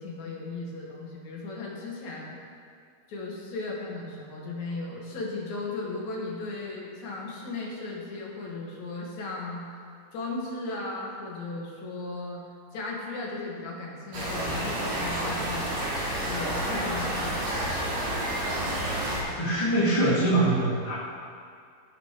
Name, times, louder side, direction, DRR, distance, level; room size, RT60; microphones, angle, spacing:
voice 1, 0.0-2.4 3.1-9.7 10.1-12.4 12.7-15.9 16.3-17.9, left 3 dB, 65° left, -3 dB, 2.8 m, -36 dB
sound 1, 14.1-19.2, right 1 dB, 85° right, 4.6 m, -30 dB
voice 2, 19.4-20.9, right 1 dB, 10° left, -11 dB, 2.2 m, -23 dB
15.5 x 6.1 x 5.0 m, 2.2 s
omnidirectional pair, 3.6 m